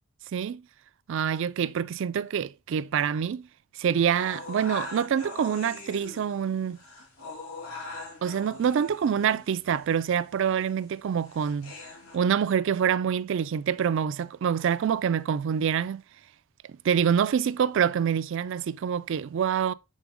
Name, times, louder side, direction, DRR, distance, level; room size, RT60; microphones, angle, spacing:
voice 1, 0.3-0.6 1.1-3.5 3.8-6.8 8.2-11.7 12.1-16.0 16.8-19.7, right 8 dB, 65° right, 0.3 m, -26 dB
sound 1, 4.1-12.2, left 3 dB, 80° left, 2.1 m, -42 dB
7.3 x 3.8 x 3.6 m
head